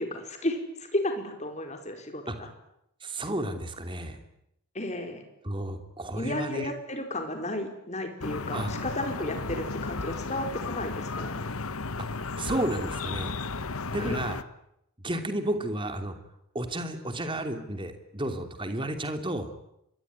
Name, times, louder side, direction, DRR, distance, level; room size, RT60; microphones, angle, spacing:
voice 1, 0.0-2.5 4.7-5.2 6.2-11.5 14.0-14.2, left 1 dB, 30° left, 5 dB, 4.7 m, -33 dB
voice 2, 3.0-4.2 5.4-6.7 8.5-8.7 12.4-13.4 13.9-14.4 15.0-16.1 16.5-19.5, right 1 dB, 20° right, 7 dB, 2.9 m, -32 dB
sound 1, 8.2-14.4, left 3 dB, 70° left, 1.2 m, -34 dB
26.5 x 22.5 x 9.7 m, 0.80 s
head